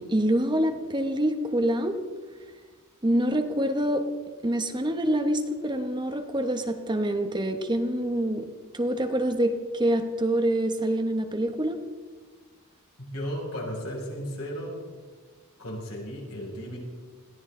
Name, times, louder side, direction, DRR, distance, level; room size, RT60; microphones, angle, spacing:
voice 1, 0.0-2.0 3.0-4.1 4.4-8.5 8.7-11.8, right 1 dB, 20° right, 6 dB, 1.1 m, -26 dB
voice 2, 13.1-14.7 15.6-16.8, equal, 75° left, -2 dB, 6.4 m, -34 dB
21.5 x 16.5 x 3.8 m, 1.5 s
head